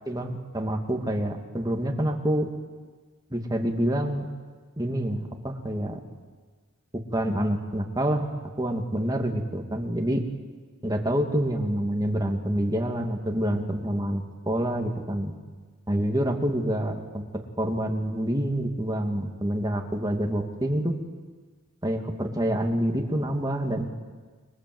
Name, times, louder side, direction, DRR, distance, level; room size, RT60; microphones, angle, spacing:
voice 1, 0.1-2.5 3.3-4.3 4.8-6.0 7.1-8.3 8.6-10.2 10.8-15.3 15.9-17.2 17.6-20.9 21.8-23.9, right 1 dB, 15° right, 2 dB, 2.5 m, -27 dB
29.5 x 23.5 x 8.0 m, 1.4 s
head